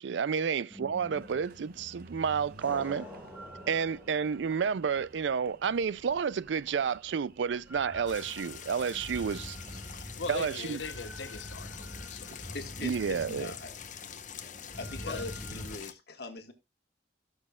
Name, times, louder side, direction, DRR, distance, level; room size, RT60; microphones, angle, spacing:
voice 1, 0.0-3.1 3.7-9.6 10.3-10.8 12.8-13.5, right 6 dB, 75° right, 0.4 m, -30 dB
sound 1, 0.7-5.1 7.7-15.8, equal, 10° right, 1.6 m, -45 dB
Engine, 1.1-10.1, right 2 dB, 55° right, 0.9 m, -54 dB
sound 2, 8.1-15.9, left 8 dB, 45° left, 0.9 m, -45 dB
voice 2, 10.2-12.6 15.1-15.2, left 4 dB, 85° left, 0.8 m, -40 dB
voice 3, 12.5-13.7 14.4-14.5 14.8-16.5, left 3 dB, 60° left, 1.6 m, -42 dB
18.0 x 6.4 x 2.3 m
head